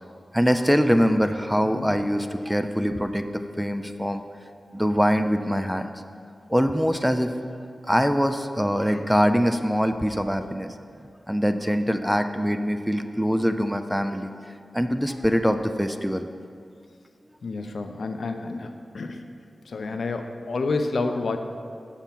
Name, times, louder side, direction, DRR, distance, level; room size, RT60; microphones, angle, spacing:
voice 1, 0.3-4.2 4.7-5.9 6.5-7.4 7.9-10.7 11.3-14.3 14.7-16.3, equal, ahead, 8 dB, 0.3 m, -23 dB
voice 2, 17.4-19.2 19.7-21.4, left 3 dB, 70° left, 6 dB, 0.5 m, -29 dB
7.0 x 5.9 x 5.8 m, 2.3 s
wide cardioid pair, 115°, 0 cm